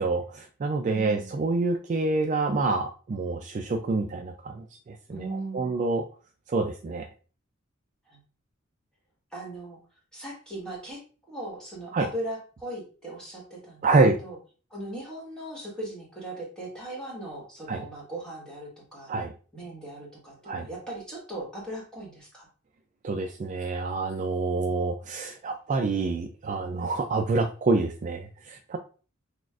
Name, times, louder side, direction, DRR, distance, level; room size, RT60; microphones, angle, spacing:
voice 1, 0.0-5.2 5.5-6.0 6.5-7.1 11.9-12.1 13.8-14.2 17.7-17.8 19.1-19.3 20.5-20.7 23.0-28.8, right 3 dB, 35° right, 4 dB, 0.3 m, -27 dB
voice 2, 0.9-1.3 5.1-5.7 8.1-8.2 9.3-9.8 10.1-11.0 11.3-13.9 14.2-14.4 14.7-19.1 19.5-22.5 24.5-24.8, right 1 dB, 5° left, -4 dB, 1.5 m, -38 dB
6.1 x 2.4 x 2.4 m, 0.38 s
head